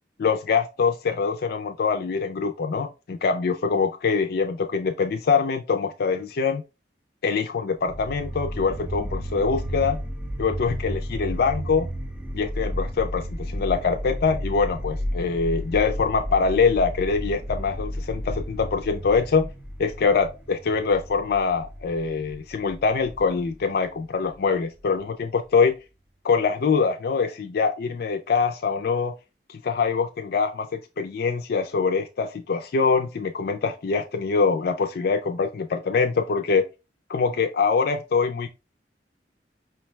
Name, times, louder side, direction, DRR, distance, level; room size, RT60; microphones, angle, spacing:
voice 1, 0.2-6.6 7.2-10.0 10.4-11.9 12.3-19.5 19.8-25.7 26.2-29.1 29.5-36.6 37.1-38.5, left 5 dB, 60° left, 0.4 m, -24 dB
sound 1, 7.9-24.9, equal, 5° right, 0.4 m, -33 dB
5.0 x 2.2 x 3.1 m
head